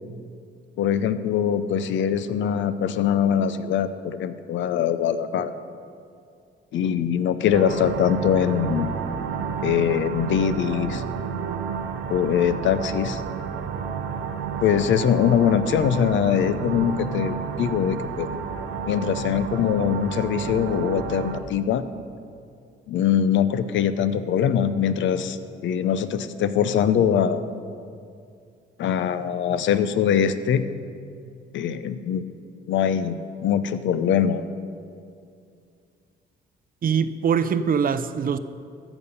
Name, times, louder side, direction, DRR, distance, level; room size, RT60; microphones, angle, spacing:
voice 1, 0.8-5.6 6.7-8.9 9.6-11.0 12.1-13.2 14.6-18.3 18.9-21.8 22.9-25.4 25.6-27.4 28.8-30.6 31.5-32.2 32.7-34.4, left 8 dB, 75° left, 0.6 m, -22 dB
sound 1, 7.5-21.4, right 6 dB, 90° right, 0.7 m, -31 dB
voice 2, 36.8-38.4, right 7 dB, 45° right, 0.5 m, -23 dB
14.0 x 7.1 x 5.5 m
cardioid pair, 90°, 20 cm